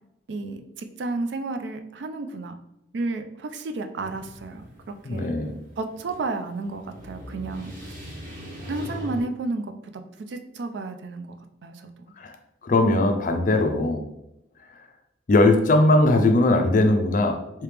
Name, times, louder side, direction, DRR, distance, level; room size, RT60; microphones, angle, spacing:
voice 1, 0.3-2.5 2.9-5.3 5.8-7.9 8.7-9.7 10.2-11.9 13.5-13.9, right 3 dB, 65° right, 7 dB, 0.4 m, -32 dB
sound 1, 4.0-9.2, equal, 45° right, 1.0 m, -40 dB
voice 2, 5.0-5.6 12.2-12.4 12.6-14.0 15.3-17.6, left 2 dB, 45° left, 5 dB, 0.4 m, -20 dB
3.2 x 2.8 x 3.3 m, 0.85 s
head